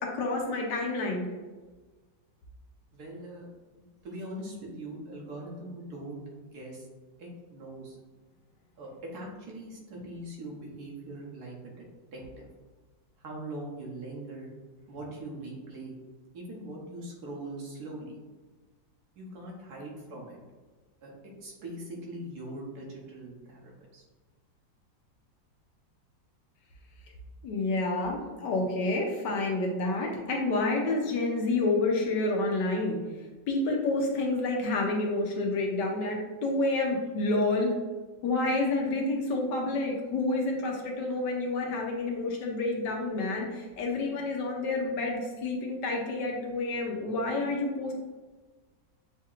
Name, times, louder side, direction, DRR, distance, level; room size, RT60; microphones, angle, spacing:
voice 1, 0.0-1.2 27.4-33.0 33.5-37.7 38.2-47.9, left 2 dB, 75° left, 0 dB, 1.2 m, -29 dB
voice 2, 2.9-3.5 3.8-6.9 7.2-8.0 8.8-11.8 12.1-12.5 13.2-14.5 14.9-15.9 16.3-18.1 19.2-20.4 21.0-24.0, right 1 dB, 60° right, -2 dB, 1.3 m, -41 dB
6.6 x 2.8 x 2.4 m, 1.3 s
omnidirectional pair, 2.0 m